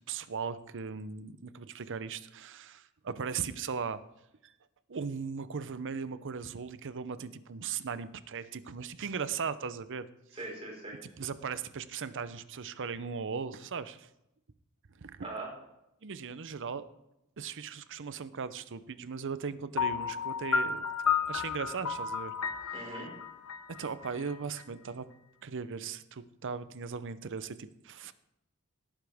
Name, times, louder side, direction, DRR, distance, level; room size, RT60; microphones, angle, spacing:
voice 1, 0.1-4.0 4.4-4.5 4.9-10.1 11.2-14.1 15.0-15.2 16.0-16.8 17.4-20.8 21.3-22.3 23.7-25.1 25.4-28.1, right 6 dB, 55° right, 14 dB, 0.7 m, -38 dB
voice 2, 10.3-11.0 15.2-15.5 22.7-23.1, right 2 dB, 25° right, -2 dB, 4.8 m, -40 dB
Piano, 19.8-24.6, left 6 dB, 75° left, 1.0 m, -32 dB
17.5 x 9.9 x 3.5 m, 0.86 s
head